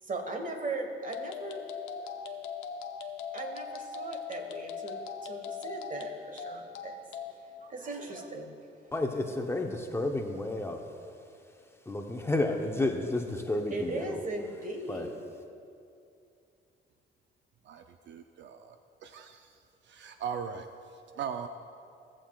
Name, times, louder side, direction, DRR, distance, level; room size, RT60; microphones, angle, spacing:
voice 1, 0.0-1.6 3.3-7.0 7.4-8.8 13.7-15.2, right 2 dB, 40° right, 4 dB, 1.3 m, -38 dB
sound 1, 1.0-7.3, left 6 dB, 90° left, 0.7 m, -40 dB
voice 2, 8.9-10.8 11.9-14.2 14.9-15.1, left 2 dB, 10° left, 3 dB, 0.8 m, -31 dB
voice 3, 17.6-18.8 19.0-19.6 19.8-21.5, right 7 dB, 65° right, 7 dB, 0.5 m, -39 dB
16.5 x 7.5 x 2.3 m, 2.6 s
cardioid pair, 90°, 20 cm